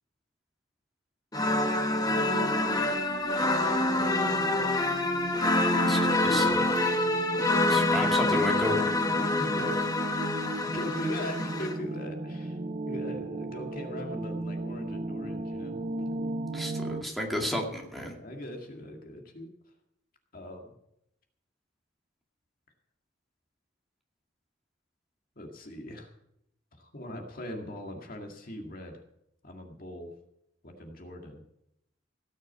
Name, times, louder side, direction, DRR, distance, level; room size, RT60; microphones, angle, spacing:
sound 1, 1.3-11.7, left 2 dB, 20° left, 1.1 m, -26 dB
sound 2, 2.1-17.0, right 2 dB, 35° right, 0.5 m, -35 dB
voice 1, 6.2-6.6 7.7-8.8 16.5-18.1, equal, ahead, -1 dB, 2.4 m, -32 dB
voice 2, 9.4-9.7 10.6-12.6 12.9-15.7 18.2-19.5 20.3-20.8 25.4-26.1 26.7-29.0 29.4-30.1 30.6-31.4, equal, 50° left, 2 dB, 2.0 m, -39 dB
17.5 x 6.5 x 8.2 m, 0.79 s
head